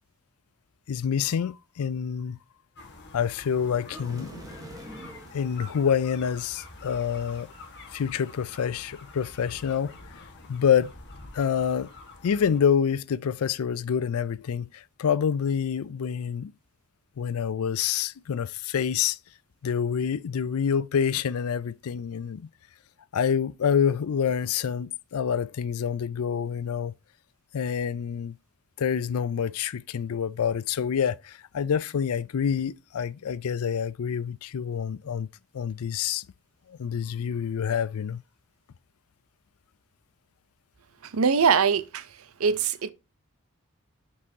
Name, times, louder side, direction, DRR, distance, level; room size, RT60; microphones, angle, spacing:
voice 1, 0.9-2.4 3.1-4.3 5.3-7.5 7.9-9.9 10.5-10.9 11.3-11.9 12.2-16.5 17.2-19.2 19.6-22.5 23.1-26.9 27.5-28.4 28.8-35.3 35.5-36.2 36.7-38.2, left 7 dB, 80° left, 0.4 m, -27 dB
sound 1, 2.8-12.6, left 2 dB, 55° left, 1.4 m, -47 dB
sound 2, 3.9-5.4, right 1 dB, 15° right, 1.1 m, -43 dB
voice 2, 41.1-42.1 42.4-42.9, right 6 dB, 75° right, 0.6 m, -22 dB
6.3 x 5.5 x 2.7 m
head